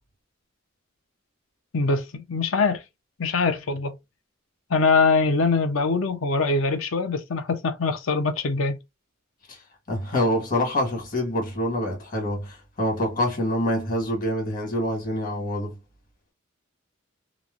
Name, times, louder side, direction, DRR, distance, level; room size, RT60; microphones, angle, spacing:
voice 1, 1.7-2.8 3.2-4.0 4.7-8.8, left 4 dB, 70° left, 0.6 m, -23 dB
voice 2, 9.9-15.8, left 1 dB, 45° left, 1.4 m, -26 dB
3.0 x 2.1 x 2.4 m
head